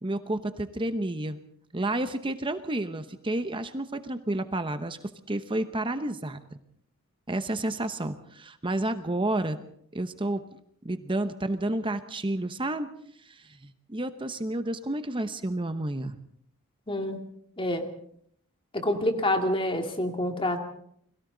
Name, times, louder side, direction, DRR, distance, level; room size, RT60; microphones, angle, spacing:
voice 1, 0.0-1.4 1.7-5.0 5.3-6.6 7.3-9.6 9.9-10.4 10.8-12.9 13.2-16.1, right 1 dB, 20° right, 10 dB, 0.9 m, -30 dB
voice 2, 16.9-17.2 17.6-17.9 18.7-20.6, left 1 dB, 25° left, 5 dB, 2.3 m, -27 dB
30.0 x 22.5 x 4.0 m, 0.66 s
head